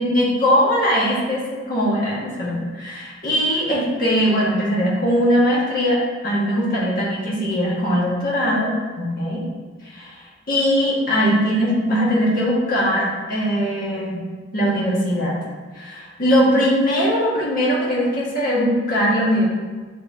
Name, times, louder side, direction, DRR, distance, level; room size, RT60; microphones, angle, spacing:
voice 1, 0.0-9.4 9.8-14.2 14.5-15.3 15.7-19.5, equal, 45° left, -6 dB, 1.7 m, -20 dB
8.2 x 4.4 x 2.8 m, 1.4 s
head